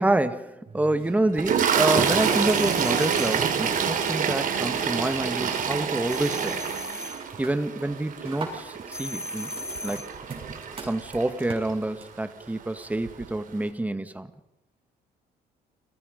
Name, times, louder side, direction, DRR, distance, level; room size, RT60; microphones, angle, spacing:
voice 1, 0.0-6.6 7.4-10.0 10.8-14.3, right 1 dB, 10° right, 10 dB, 1.7 m, -27 dB
sound 1, 0.6-5.2 5.5-5.9 6.2-6.7 7.0-12.3, right 3 dB, 30° right, 8.0 m, -41 dB
Toilet flush, 1.4-11.7 12.6-12.8 13.0-13.2, right 7 dB, 50° right, 4.1 m, -27 dB
sound 2, 2.3-3.5 6.1-7.3 8.9-10.2, left 2 dB, 15° left, 1.7 m, -37 dB
30.0 x 22.5 x 5.3 m, 0.91 s
cardioid pair, 110°, 17 cm